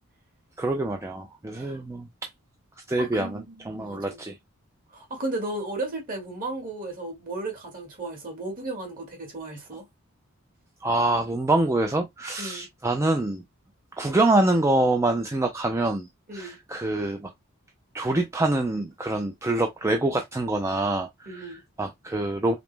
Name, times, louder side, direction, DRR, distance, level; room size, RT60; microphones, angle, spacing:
voice 1, 0.6-2.1 2.9-4.4 10.8-13.4 14.0-16.1 16.3-17.3 17.9-21.5 21.8-22.6, right 2 dB, 15° right, 0.4 m, -25 dB
voice 2, 3.0-4.2 4.9-9.9 12.4-12.7 16.3-16.6 21.3-21.6, right 2 dB, 40° right, 1.7 m, -35 dB
5.0 x 2.0 x 3.3 m
head